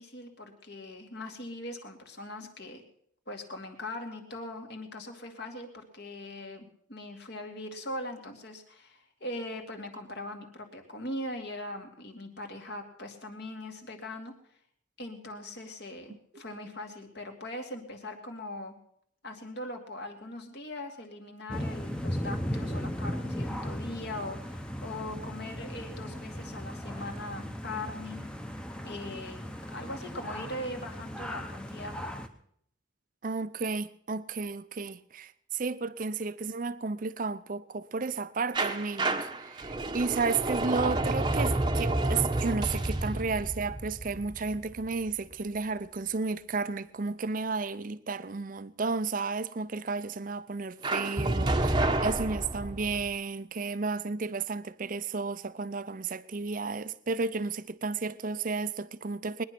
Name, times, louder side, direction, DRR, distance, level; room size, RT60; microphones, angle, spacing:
voice 1, 0.0-2.8 3.3-14.3 15.0-18.8 19.2-28.2 28.8-29.5 29.7-32.0 51.3-51.5, left 1 dB, 55° left, 2.3 m, -40 dB
sound 1, 21.5-32.3, equal, 5° left, 0.9 m, -37 dB
voice 2, 33.2-59.4, right 4 dB, 40° right, 0.6 m, -33 dB
sound 2, 38.5-45.3 50.8-53.1, right 2 dB, 20° right, 0.9 m, -30 dB
21.0 x 10.5 x 6.0 m
head